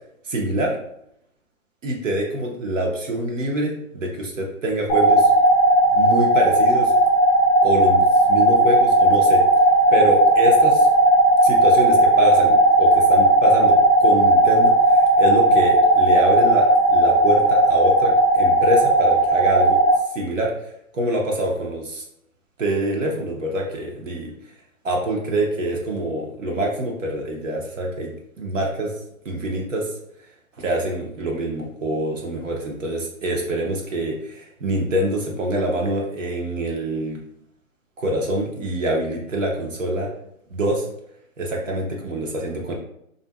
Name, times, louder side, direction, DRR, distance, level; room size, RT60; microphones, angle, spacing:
voice 1, 0.2-0.8 1.8-5.3 5.9-6.9 7.6-9.4 9.9-10.9 11.4-19.8 20.1-22.0 22.6-24.3 24.8-28.9 29.2-29.9 30.6-37.2 38.0-40.1 40.5-40.9 41.4-42.7, right 1 dB, 65° right, 0 dB, 0.7 m, -25 dB
sound 1, 4.9-19.9, right 1 dB, 5° right, 0.6 m, -16 dB
2.5 x 2.5 x 2.3 m, 0.75 s
hypercardioid pair, 145°, 42 cm